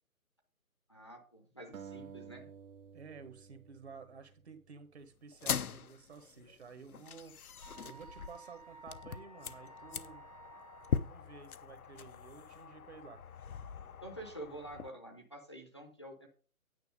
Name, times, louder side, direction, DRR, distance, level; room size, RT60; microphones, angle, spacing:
voice 1, 0.9-2.5 14.0-16.3, right 1 dB, 20° left, 0.7 m, -48 dB
sound 1, 1.7-5.0, right 7 dB, 70° right, 0.8 m, -52 dB
voice 2, 2.9-7.5 7.8-10.3 11.1-13.2, right 5 dB, 50° right, 1.4 m, -52 dB
sound 2, 5.3-14.9, left 7 dB, 85° left, 0.8 m, -42 dB
Wind instrument woodwind instrument, 7.6-11.1, right 4 dB, 30° right, 0.6 m, -55 dB
9.4 x 5.7 x 5.0 m
hypercardioid pair, 170°, 43 cm